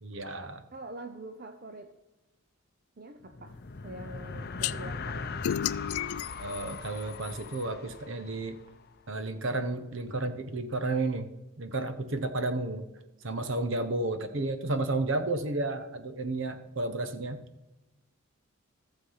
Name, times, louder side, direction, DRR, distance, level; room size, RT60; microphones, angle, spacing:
voice 1, 0.0-0.6 6.4-8.6 9.1-11.3 11.6-12.8 13.2-17.4, right 2 dB, 60° right, 10 dB, 1.0 m, -32 dB
voice 2, 0.7-1.9 3.0-3.6 3.8-5.3, right 2 dB, 45° right, 6 dB, 0.8 m, -44 dB
sound 1, 3.2-8.9, left 4 dB, 45° left, 0.6 m, -40 dB
sound 2, 4.6-4.7 5.4-7.6, left 10 dB, 85° left, 0.4 m, -33 dB
14.5 x 7.4 x 5.7 m, 1.0 s
head